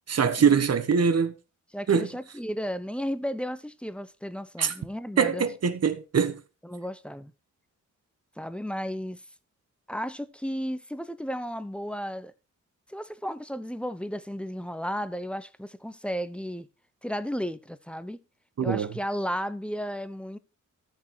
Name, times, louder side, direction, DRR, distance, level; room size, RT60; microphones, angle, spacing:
voice 1, 0.1-1.3 1.9-2.1 4.6-4.7 5.2-6.4 18.6-18.9, right 6 dB, 50° right, 1.2 m, -23 dB
voice 2, 1.7-5.5 6.6-7.3 8.4-9.2 9.9-12.3 12.9-16.7 17.0-18.2 18.6-20.4, equal, 5° left, 0.8 m, -34 dB
13.0 x 6.3 x 4.6 m
wide cardioid pair, 100°, 32 cm